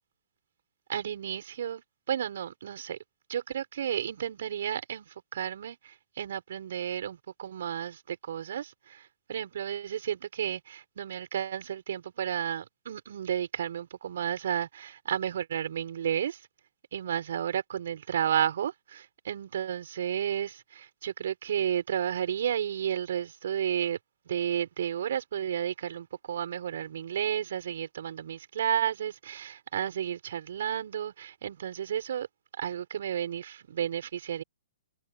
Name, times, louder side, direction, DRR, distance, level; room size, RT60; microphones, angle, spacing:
voice 1, 0.9-1.8 2.1-3.0 3.3-16.4 16.9-24.0 24.3-32.3 32.6-34.4, right 9 dB, 65° right, 5.9 m, -32 dB
hypercardioid pair, 130°, 0 cm